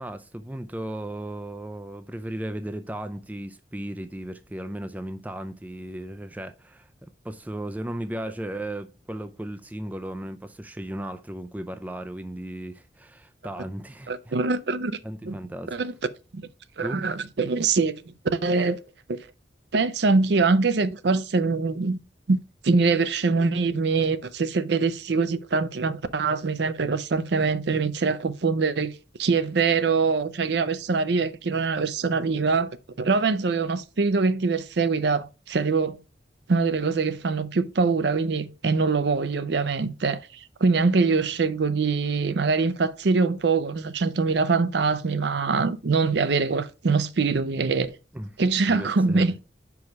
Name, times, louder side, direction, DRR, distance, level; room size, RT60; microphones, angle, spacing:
voice 1, 0.0-6.9 7.2-14.3 15.0-15.8 16.8-17.0 48.1-48.3 48.7-49.4, right 1 dB, 10° right, 0.3 m, -35 dB
voice 2, 14.1-14.9 15.2-15.4 15.7-15.9 16.3-16.4 16.8-17.9 18.3-18.8 19.7-22.0 22.3-28.9 29.2-32.7 33.0-36.0 36.5-48.0 48.4-49.4, right 4 dB, 65° right, 0.5 m, -23 dB
5.3 x 4.8 x 4.7 m
head